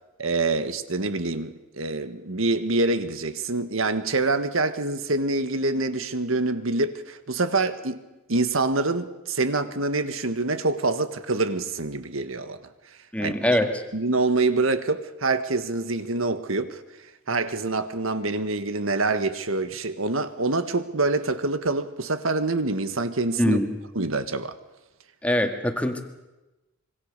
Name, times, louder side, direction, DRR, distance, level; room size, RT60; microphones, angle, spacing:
voice 1, 0.2-8.0 8.3-12.6 13.2-13.3 13.9-16.8 17.3-23.6 23.9-24.5, right 3 dB, 70° right, 1.7 m, -26 dB
voice 2, 13.1-13.8 23.4-23.8 25.2-26.0, left 1 dB, 5° left, 1.9 m, -23 dB
25.5 x 24.5 x 6.8 m
head